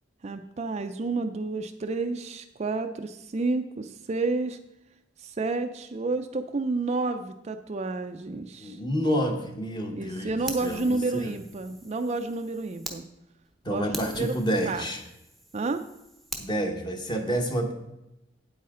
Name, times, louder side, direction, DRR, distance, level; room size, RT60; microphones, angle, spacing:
voice 1, 0.2-4.6 5.2-8.8 9.9-13.1 13.7-13.9 14.2-14.4 14.6-14.8 15.5-15.8, right 3 dB, 35° right, 8 dB, 0.4 m, -30 dB
voice 2, 8.6-10.3 10.6-11.3 13.6-15.0 16.4-17.7, equal, 25° left, 3 dB, 1.1 m, -29 dB
Fire, 10.5-13.0 13.4-13.5 13.9-16.5, right 1 dB, ahead, 0.8 m, -42 dB
8.6 x 8.4 x 3.8 m, 0.90 s
head